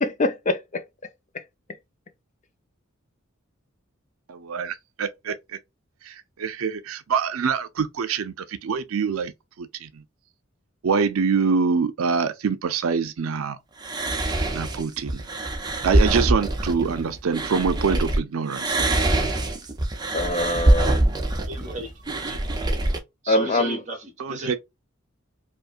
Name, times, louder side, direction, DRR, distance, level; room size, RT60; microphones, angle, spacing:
voice 1, 0.0-0.8 20.1-21.0 23.3-23.8, left 2 dB, 35° left, 0.5 m, -24 dB
voice 2, 4.3-5.3 6.1-9.3 9.6-9.9 10.8-13.6 14.5-15.2 15.8-18.7 24.2-24.6, right 5 dB, 85° right, 0.5 m, -25 dB
sound 1, 13.8-18.2 18.5-23.0, right 1 dB, 20° right, 0.6 m, -24 dB
voice 3, 21.4-21.9 22.3-22.7 23.2-24.6, right 1 dB, 35° right, 1.4 m, -35 dB
4.9 x 2.2 x 2.5 m
head